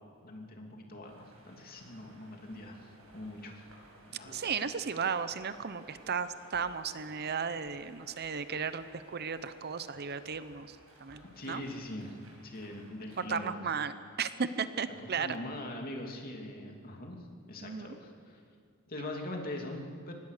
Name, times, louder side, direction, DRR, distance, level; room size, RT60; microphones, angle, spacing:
voice 1, 0.2-3.6 4.1-4.3 11.4-12.2 12.4-13.5 15.2-17.2 17.5-18.4 18.9-20.1, left 1 dB, 45° left, 1 dB, 2.8 m, -42 dB
sound 1, 1.0-13.3, right 1 dB, 75° right, 6.7 m, -58 dB
voice 2, 4.3-11.6 13.2-15.3 17.6-17.9, right 6 dB, 50° right, 12 dB, 0.8 m, -35 dB
25.0 x 19.5 x 6.7 m, 2.1 s
head